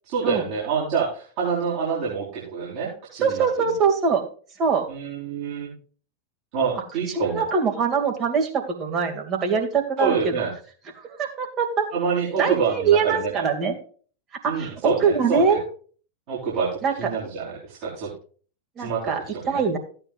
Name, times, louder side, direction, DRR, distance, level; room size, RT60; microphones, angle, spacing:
voice 1, 0.0-3.4 4.9-5.7 6.5-7.4 10.0-10.5 11.9-13.3 14.5-15.6 16.3-18.1 18.8-19.0 19.3-19.6, right 6 dB, 45° right, -7 dB, 4.5 m, -26 dB
voice 2, 3.2-4.2 4.6-4.9 7.1-10.3 11.2-11.9 12.4-13.7 14.4-15.6 16.8-16.9 18.8-19.2 19.5-19.8, right 5 dB, 30° right, 2 dB, 2.4 m, -23 dB
15.0 x 8.9 x 2.6 m, 0.41 s
figure-of-eight pair, 90°, 0 cm